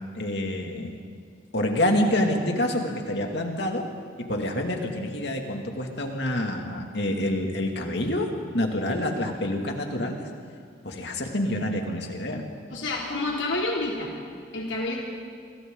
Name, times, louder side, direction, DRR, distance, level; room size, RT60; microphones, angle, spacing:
voice 1, 0.1-0.9 1.5-3.8 4.3-8.3 8.5-10.2 10.8-12.4, left 1 dB, 65° left, 2 dB, 2.5 m, -27 dB
voice 2, 12.7-14.1 14.5-15.0, left 2 dB, 80° left, -2 dB, 3.1 m, -28 dB
28.5 x 23.5 x 4.0 m, 2.2 s
head